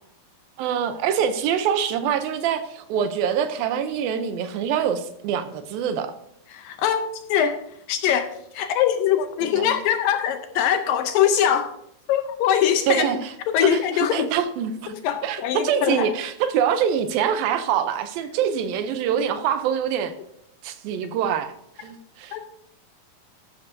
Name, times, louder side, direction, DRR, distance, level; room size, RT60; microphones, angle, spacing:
voice 1, 0.6-6.1 9.4-9.7 12.9-14.9 15.2-20.1 20.6-21.5 21.8-22.4, right 8 dB, 80° right, 10 dB, 2.4 m, -25 dB
voice 2, 6.5-7.0 7.3-7.6 7.9-11.7 12.1-13.1 13.5-14.3 14.9-16.1 22.3-22.5, left 9 dB, 80° left, 8 dB, 2.2 m, -22 dB
13.0 x 12.0 x 2.7 m, 0.75 s
omnidirectional pair, 4.5 m